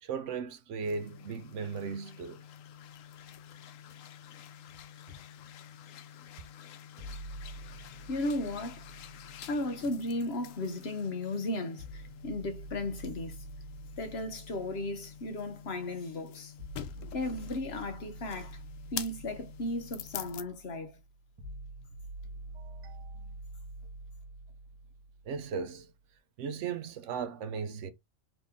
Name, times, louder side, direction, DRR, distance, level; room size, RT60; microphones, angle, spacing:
voice 1, 0.0-2.4 17.0-17.1 22.5-23.3 25.3-25.9 26.4-27.9, right 5 dB, 70° right, 0.9 m, -37 dB
sound 1, 0.8-20.4, left 10 dB, 80° left, 1.0 m, -48 dB
sound 2, 7.0-11.0 11.8-25.8, right 1 dB, 25° right, 1.3 m, -47 dB
voice 2, 8.1-8.9 9.5-13.4 14.0-16.5 17.1-18.6 18.9-21.0, left 1 dB, 55° left, 1.1 m, -35 dB
4.2 x 2.9 x 3.5 m
omnidirectional pair, 1.3 m